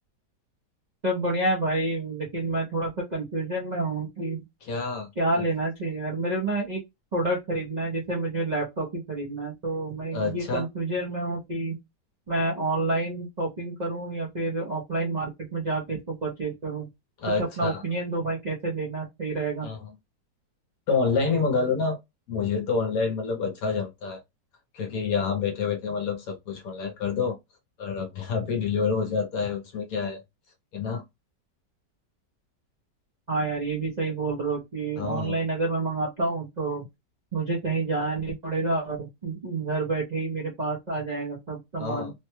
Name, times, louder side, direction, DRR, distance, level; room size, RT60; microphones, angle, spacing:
voice 1, 1.0-4.4 5.2-6.8 7.1-11.8 12.3-16.9 17.4-19.7 33.3-36.8 37.3-42.1, right 2 dB, 45° right, 0.6 m, -29 dB
voice 2, 4.6-5.1 5.4-5.5 10.1-10.6 17.2-17.8 19.6-19.9 20.9-22.0 22.3-24.2 24.7-27.4 27.8-30.2 30.7-31.0 35.0-35.4 41.8-42.1, left 5 dB, 65° left, 1.0 m, -28 dB
3.2 x 2.2 x 2.9 m
omnidirectional pair, 1.8 m